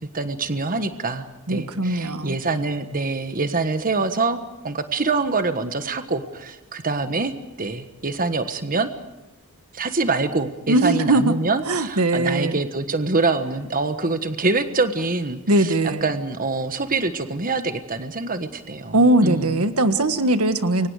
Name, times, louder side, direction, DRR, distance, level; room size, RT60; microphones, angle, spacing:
voice 1, 0.1-4.4 4.6-7.3 7.6-8.9 9.7-19.6, right 3 dB, 40° right, 9 dB, 1.4 m, -25 dB
voice 2, 1.5-2.4 10.7-11.3 11.6-12.6 15.5-16.1 18.9-20.9, right 2 dB, 85° right, 9 dB, 1.6 m, -20 dB
29.0 x 24.0 x 4.9 m, 0.98 s
head